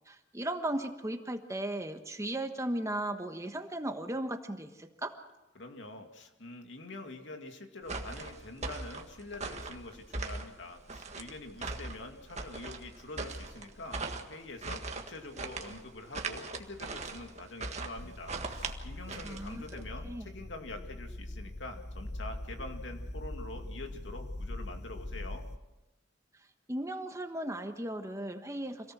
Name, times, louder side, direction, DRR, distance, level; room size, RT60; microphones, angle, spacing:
voice 1, 0.1-5.2 19.2-19.6 20.0-20.3 26.7-28.9, right 1 dB, 15° right, 6 dB, 1.3 m, -36 dB
voice 2, 5.6-14.0 14.3-25.5, left 2 dB, 75° left, 4 dB, 2.5 m, -45 dB
sound 1, 7.8-19.8, right 3 dB, 35° right, 1.7 m, -40 dB
sound 2, 18.0-25.6, left 1 dB, 35° left, 0.8 m, -42 dB
26.5 x 18.0 x 6.2 m, 1.0 s
head